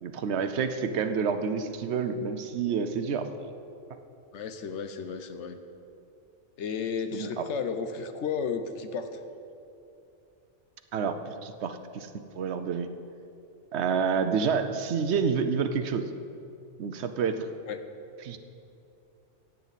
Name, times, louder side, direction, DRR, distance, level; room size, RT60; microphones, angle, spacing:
voice 1, 0.0-3.5 7.1-7.5 10.9-12.1 12.4-12.9 13.7-16.1 16.8-17.5 18.2-18.4, right 6 dB, 70° right, 9 dB, 0.9 m, -29 dB
voice 2, 4.3-5.6 6.6-9.2 17.7-17.8, left 6 dB, 80° left, 8 dB, 1.1 m, -33 dB
15.0 x 9.2 x 4.1 m, 2.7 s
omnidirectional pair, 1.2 m